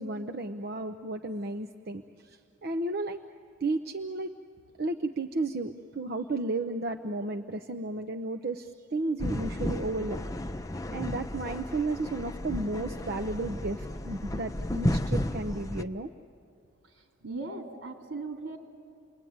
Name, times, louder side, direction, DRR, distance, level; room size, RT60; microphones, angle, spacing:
voice 1, 0.0-3.2 3.6-4.3 4.8-10.2 10.9-16.1, right 2 dB, 50° right, 6 dB, 0.7 m, -33 dB
sound 1, 9.2-15.8, left 1 dB, 15° left, 0.6 m, -33 dB
voice 2, 17.2-18.6, right 3 dB, 75° right, 2 dB, 3.8 m, -38 dB
29.5 x 22.0 x 9.4 m, 2.3 s
head